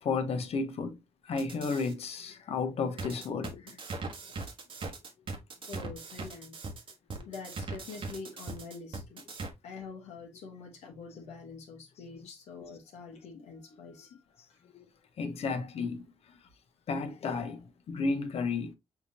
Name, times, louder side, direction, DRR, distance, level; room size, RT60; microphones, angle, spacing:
voice 1, 0.0-1.0 1.3-3.8 7.2-7.3 14.7-14.8 15.2-16.0 16.9-18.7, left 4 dB, 65° left, 0.9 m, -33 dB
sound 1, 1.3-1.9 3.0-9.5, right 3 dB, 50° right, 1.1 m, -40 dB
voice 2, 5.7-6.6 7.3-9.2 9.6-14.2 14.5-14.6, left 4 dB, 85° left, 1.1 m, -45 dB
5.7 x 2.9 x 2.8 m
cardioid pair, 70°, 11 cm